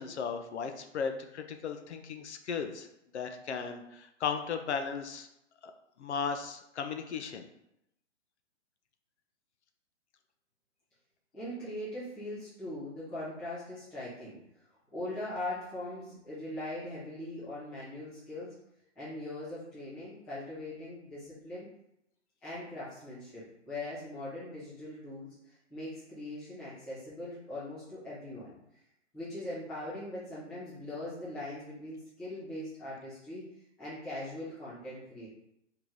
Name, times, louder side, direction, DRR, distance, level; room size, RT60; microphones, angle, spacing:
voice 1, 0.0-2.9 3.1-5.3 5.6-5.7 6.0-7.5, left 6 dB, 65° left, 6 dB, 0.5 m, -36 dB
voice 2, 11.3-14.4 14.9-18.5 19.0-21.7 22.4-28.5 29.1-33.4 33.8-35.3, left 1 dB, 5° left, -14 dB, 0.5 m, -41 dB
3.2 x 2.8 x 3.6 m, 0.81 s
hypercardioid pair, 155°, 37 cm